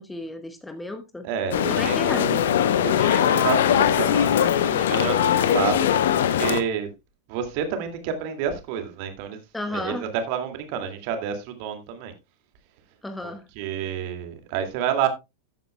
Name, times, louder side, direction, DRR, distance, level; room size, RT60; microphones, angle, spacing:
voice 1, 0.0-1.3 1.7-2.6 9.5-10.1 13.0-13.5, left 1 dB, 5° left, 1.0 m, -33 dB
voice 2, 1.2-2.5 2.8-6.9 7.3-9.4 9.7-12.1 13.6-15.1, right 8 dB, 45° right, 2.2 m, -29 dB
sound 1, 1.5-6.6, left 9 dB, 60° left, 0.8 m, -21 dB
13.5 x 8.9 x 2.2 m
figure-of-eight pair, 90°, 0 cm